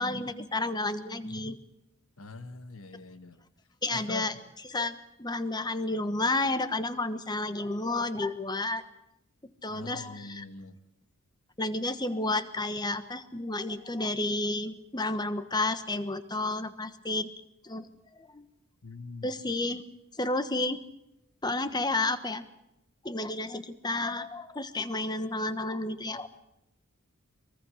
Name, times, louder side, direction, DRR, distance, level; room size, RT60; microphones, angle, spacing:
voice 1, 0.0-1.6 3.8-4.3 4.7-8.8 9.6-10.4 11.6-17.3 17.6-17.9 18.3-18.5 19.2-19.8 20.2-20.8 21.4-22.4 23.0-26.3, left 2 dB, 20° left, 11 dB, 1.2 m, -31 dB
voice 2, 2.2-3.4 3.9-4.3 9.7-10.8 18.8-19.3, left 3 dB, 70° left, 11 dB, 1.5 m, -42 dB
23.0 x 23.0 x 6.5 m, 0.86 s
head